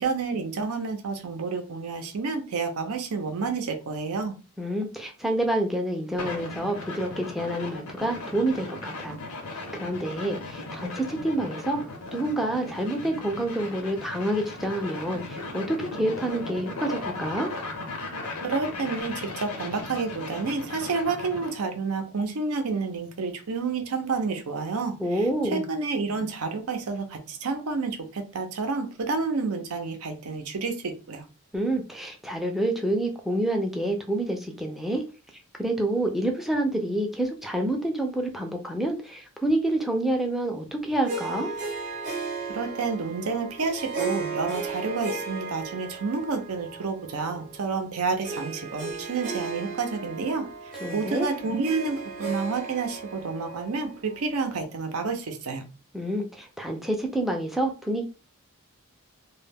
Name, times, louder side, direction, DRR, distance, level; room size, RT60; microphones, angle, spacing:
voice 1, 0.0-4.4 18.4-24.9 25.5-31.2 42.5-50.5 50.9-55.6, right 4 dB, 80° right, 0.6 m, -29 dB
voice 2, 4.6-9.2 9.7-17.5 25.0-25.7 31.5-35.0 35.6-41.5 50.8-51.3 55.9-58.0, right 1 dB, ahead, 0.4 m, -28 dB
sound 1, 6.2-21.6, left 2 dB, 80° left, 0.7 m, -37 dB
Harp, 41.1-54.7, right 4 dB, 35° right, 0.7 m, -36 dB
2.2 x 2.1 x 3.4 m
head